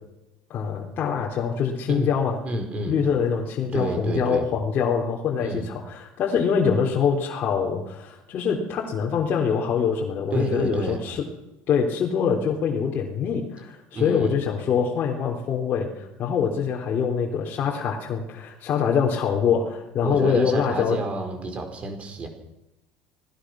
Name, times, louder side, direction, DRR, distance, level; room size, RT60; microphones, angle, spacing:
voice 1, 0.5-2.4 2.9-11.3 11.7-21.0, left 6 dB, 35° left, -1 dB, 3.6 m, -24 dB
voice 2, 2.4-3.0 3.7-4.5 5.4-5.7 10.3-11.0 13.9-14.3 20.0-22.3, right 2 dB, 25° right, 5 dB, 5.0 m, -29 dB
25.0 x 19.0 x 6.3 m, 0.90 s
cardioid pair, 150°, 5 cm